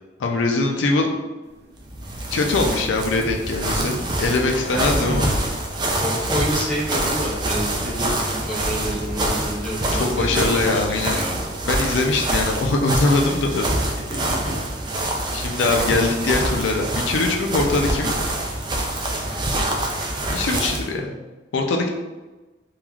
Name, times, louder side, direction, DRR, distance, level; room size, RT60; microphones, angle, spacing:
voice 1, 0.2-1.1 2.3-5.4 9.9-11.2 11.6-13.8 15.3-18.2 20.3-21.2 21.5-21.9, left 3 dB, 80° left, 2 dB, 0.4 m, -22 dB
sound 1, 1.4-12.5, equal, 55° right, 0.7 m, -36 dB
sound 2, 1.8-20.9, right 1 dB, 25° right, 0.3 m, -26 dB
voice 2, 4.7-5.0 5.9-11.4 14.1-14.5, equal, 5° left, -6 dB, 0.6 m, -29 dB
3.1 x 2.4 x 2.3 m, 1.2 s
head